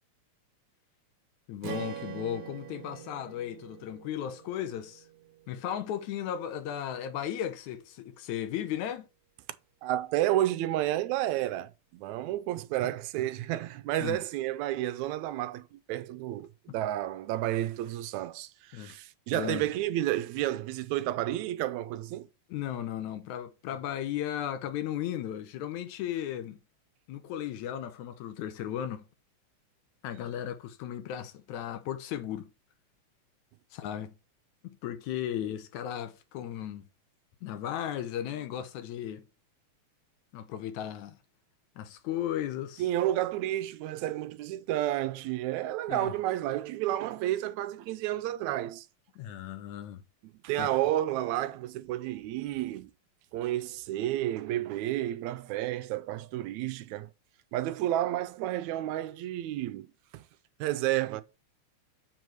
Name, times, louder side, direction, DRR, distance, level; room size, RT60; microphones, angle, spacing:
voice 1, 1.5-5.1 5.5-9.1 14.0-14.2 18.7-19.0 19.3-19.7 22.5-26.6 27.1-29.1 30.0-32.5 33.7-34.1 34.6-36.9 37.4-39.3 40.3-41.2 41.8-42.9 45.9-46.1 49.2-50.0 50.6-50.7, left 10 dB, 90° left, 2.2 m, -35 dB
Strum, 1.6-5.9, right 9 dB, 65° right, 2.1 m, -44 dB
voice 2, 9.8-22.3 42.8-48.9 50.4-52.9 53.3-57.1 57.5-60.2 60.6-61.2, right 14 dB, 85° right, 1.9 m, -31 dB
7.6 x 4.6 x 4.7 m
omnidirectional pair, 3.3 m